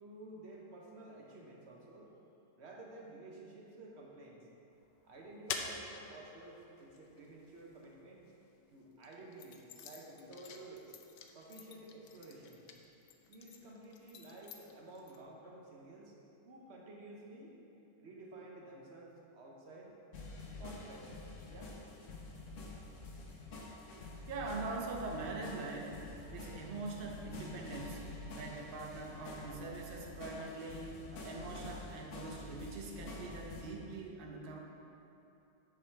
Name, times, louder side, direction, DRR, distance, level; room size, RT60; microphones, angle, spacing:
voice 1, 0.0-2.1 2.6-4.5 5.0-8.2 8.7-10.9 11.3-12.7 13.3-16.1 16.5-17.6 18.0-19.9 20.6-21.1 21.5-21.8, right 2 dB, 45° right, -2 dB, 1.1 m, -52 dB
sound 1, 4.7-8.3 8.9-15.2, left 6 dB, 85° left, 1.3 m, -48 dB
sound 2, 20.1-33.6, left 2 dB, 55° left, 1.1 m, -48 dB
voice 2, 24.3-34.6, right 3 dB, 70° right, 0 dB, 0.5 m, -43 dB
7.3 x 6.1 x 4.6 m, 2.9 s
omnidirectional pair, 1.9 m